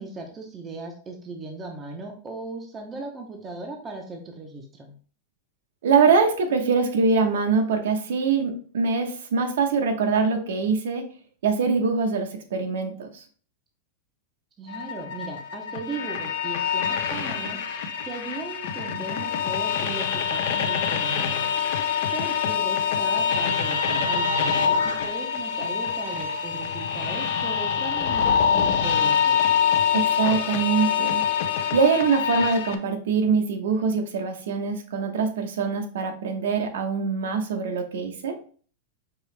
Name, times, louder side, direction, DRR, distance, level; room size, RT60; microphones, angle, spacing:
voice 1, 0.0-4.9 14.6-29.4, right 3 dB, 15° right, 2 dB, 0.6 m, -37 dB
voice 2, 5.8-11.1 11.4-13.2 29.9-31.2 31.7-38.4, right 5 dB, 75° right, 5 dB, 0.9 m, -23 dB
sound 1, 14.7-32.8, left 7 dB, 50° left, 0.5 m, -25 dB
4.7 x 3.1 x 3.2 m, 0.43 s
supercardioid pair, 175°, 0 cm